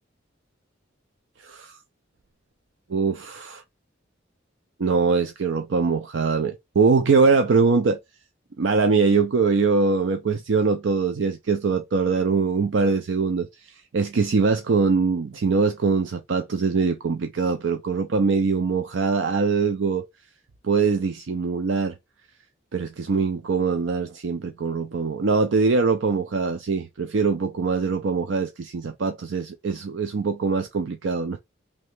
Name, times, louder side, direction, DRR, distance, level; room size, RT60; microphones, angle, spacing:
voice 1, 1.4-1.8 2.9-3.6 4.8-8.0 8.6-20.1 20.6-21.9 22.7-31.4, right 4 dB, 65° right, 0.5 m, -22 dB
3.2 x 2.8 x 3.2 m
head